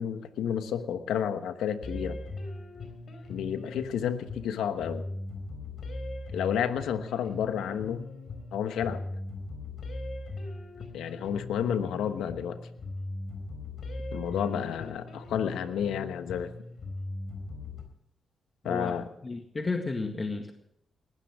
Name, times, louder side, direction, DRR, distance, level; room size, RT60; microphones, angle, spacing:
voice 1, 0.0-2.2 3.3-5.0 6.3-8.0 8.5-9.0 10.9-12.6 14.1-16.5 18.6-19.1, left 8 dB, 85° left, 10 dB, 1.2 m, -31 dB
sound 1, 1.8-17.8, left 2 dB, 65° left, 4.2 m, -39 dB
voice 2, 18.6-19.0 19.2-20.5, left 3 dB, 35° left, 4 dB, 1.9 m, -32 dB
20.0 x 16.0 x 3.7 m, 0.74 s
supercardioid pair, 55°, 0 cm